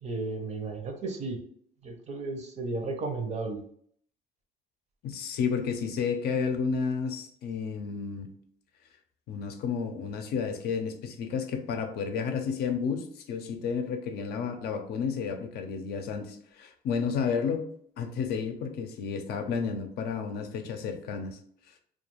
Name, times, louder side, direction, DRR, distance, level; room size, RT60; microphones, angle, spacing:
voice 1, 0.0-1.4 1.8-3.6, right 3 dB, 40° right, 4 dB, 0.6 m, -34 dB
voice 2, 5.0-8.3 9.3-17.7 18.0-21.4, left 6 dB, 70° left, 6 dB, 0.5 m, -31 dB
2.3 x 2.3 x 3.0 m, 0.63 s
cardioid pair, 110°, 17 cm